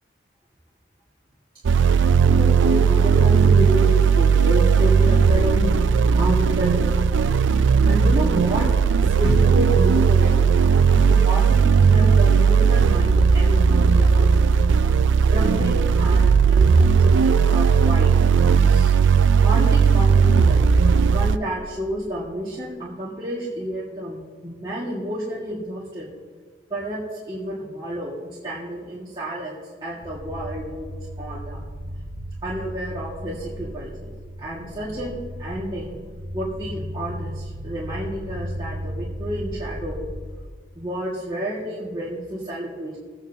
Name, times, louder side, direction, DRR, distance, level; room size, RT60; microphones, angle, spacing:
sound 1, 1.6-21.4, right 6 dB, 75° right, 0.4 m, -17 dB
voice 1, 2.4-5.8 6.2-7.1 7.8-8.7 9.0-10.6 10.9-14.3 15.3-18.1 18.6-18.9 19.4-20.7 21.1-26.1 26.7-31.6 32.4-34.1 34.4-36.0 36.3-40.1 40.8-43.0, equal, 25° right, -7 dB, 1.8 m, -30 dB
sound 2, 30.0-40.2, equal, 5° right, 2.0 m, -35 dB
23.0 x 8.9 x 2.8 m, 1.5 s
head